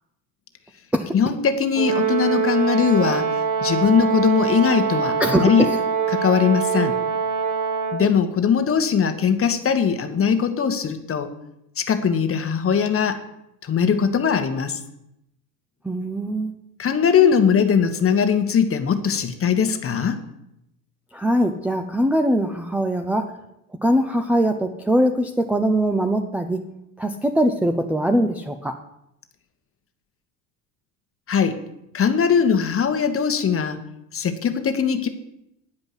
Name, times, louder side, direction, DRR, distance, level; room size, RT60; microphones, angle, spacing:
voice 1, 1.1-5.7 6.1-7.0 7.9-11.3 11.8-13.2 13.6-14.8 16.8-20.2 31.3-31.6 31.9-33.8 34.1-35.1, left 7 dB, 25° left, 8 dB, 1.3 m, -20 dB
Brass instrument, 1.8-8.1, right 6 dB, 40° right, 1.2 m, -23 dB
voice 2, 5.2-5.8 15.8-16.5 21.1-23.3 23.8-26.6 27.0-28.8, equal, 5° right, 3 dB, 0.6 m, -21 dB
9.9 x 5.2 x 8.0 m, 0.83 s
hypercardioid pair, 75°, 49 cm